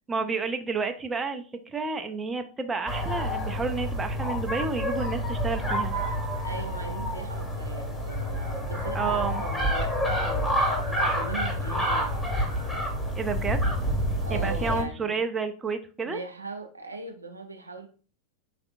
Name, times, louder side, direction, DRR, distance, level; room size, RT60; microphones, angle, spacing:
voice 1, 0.1-5.9 8.9-9.4 13.2-13.6 14.3-16.2, right 4 dB, 15° right, 7 dB, 0.5 m, -30 dB
sound 1, 2.9-14.8, equal, 10° left, 1.3 m, -28 dB
voice 2, 6.4-12.3 14.2-15.2 16.0-17.9, right 3 dB, 80° right, 4 dB, 0.7 m, -40 dB
5.0 x 3.4 x 2.5 m, 0.39 s
figure-of-eight pair, 90°, 0 cm